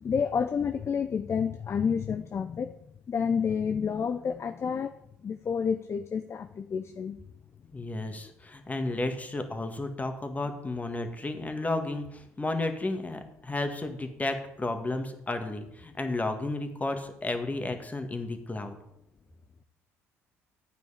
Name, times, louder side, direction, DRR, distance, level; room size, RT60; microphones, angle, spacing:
voice 1, 0.0-2.7 3.1-5.0 5.2-7.2, left 6 dB, 40° left, 10 dB, 0.6 m, -29 dB
voice 2, 7.7-18.8, left 2 dB, 20° left, 6 dB, 1.9 m, -32 dB
11.5 x 9.1 x 5.1 m, 0.78 s
hypercardioid pair, 50°, 7 cm